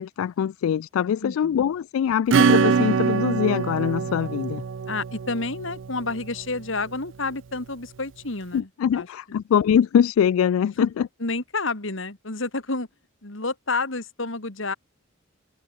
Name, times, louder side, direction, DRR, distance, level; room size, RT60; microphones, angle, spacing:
voice 1, 0.0-4.6 8.5-10.9, left 8 dB, 85° left, 0.3 m, -23 dB
voice 2, 1.2-1.7 4.9-9.4 10.8-10.9 11.2-12.9 13.2-14.7, left 3 dB, 65° left, 2.6 m, -30 dB
Acoustic guitar / Strum, 2.3-6.6, right 6 dB, 60° right, 0.4 m, -24 dB
head